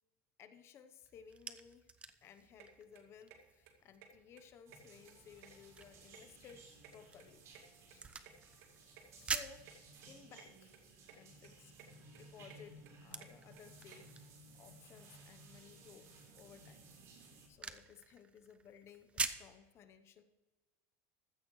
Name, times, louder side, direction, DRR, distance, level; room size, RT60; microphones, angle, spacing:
voice 1, 0.4-1.9 2.2-6.6 6.9-7.6 7.9-8.0 9.1-9.6 10.1-10.7 11.1-12.8 13.0-16.1 16.3-16.8 17.5-20.2, left 7 dB, 35° left, 10 dB, 0.9 m, -58 dB
sound 1, 1.0-19.6, right 5 dB, 15° right, 0.6 m, -48 dB
sound 2, 2.6-2.7 2.9-3.4 3.7-3.8 4.0-4.1 4.3-5.1 5.4-6.6 6.8-8.3 8.6-8.7 9.0-9.1 9.3-9.4 9.7-9.8 10.0-10.5 10.7-11.2 11.4-11.9 12.1-14.0, right 9 dB, 70° right, 2.3 m, -58 dB
sound 3, 4.7-17.5, right 2 dB, 40° right, 4.2 m, -59 dB
15.0 x 13.5 x 3.2 m, 1.2 s
cardioid pair, 160°, 8 cm